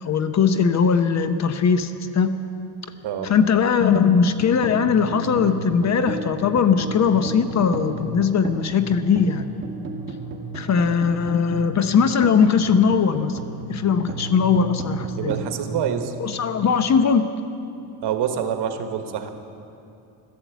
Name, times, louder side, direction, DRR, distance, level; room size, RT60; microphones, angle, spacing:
voice 1, 0.0-2.3 3.2-9.5 10.5-13.4 13.7-15.3 16.2-17.3, left 6 dB, 40° left, 10 dB, 0.8 m, -20 dB
sound 1, 4.2-16.6, right 3 dB, 25° right, 2.2 m, -34 dB
voice 2, 15.1-16.1 18.0-19.3, right 8 dB, 65° right, 6 dB, 1.5 m, -26 dB
13.5 x 11.5 x 8.2 m, 2.6 s
cardioid pair, 120°, 43 cm